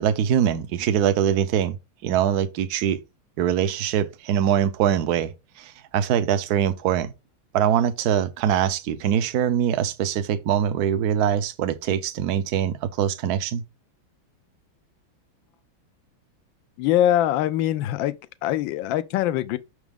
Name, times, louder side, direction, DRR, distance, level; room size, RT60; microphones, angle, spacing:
voice 1, 0.0-1.8 2.0-3.0 3.4-5.3 5.6-7.1 7.5-13.6, right 9 dB, 60° right, 1.1 m, -23 dB
voice 2, 16.8-18.2 18.4-19.6, left 12 dB, 75° left, 1.3 m, -22 dB
6.1 x 4.7 x 3.5 m
omnidirectional pair, 2.2 m